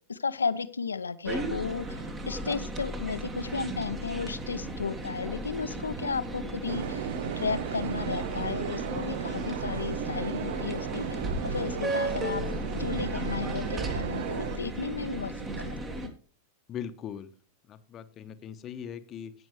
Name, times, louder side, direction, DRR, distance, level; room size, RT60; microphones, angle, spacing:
voice 1, 0.0-2.0 2.3-7.1 7.4-11.2 11.4-12.4 12.7-16.1, left 5 dB, 75° left, 13 dB, 0.7 m, -34 dB
sound 1, 1.3-16.1, right 1 dB, 20° right, 1.7 m, -35 dB
sound 2, 6.7-14.6, right 9 dB, 55° right, 0.6 m, -35 dB
voice 2, 16.7-17.3 17.7-19.3, left 8 dB, 30° left, 10 dB, 1.0 m, -40 dB
18.0 x 6.2 x 3.2 m, 0.42 s
figure-of-eight pair, 90°, 0 cm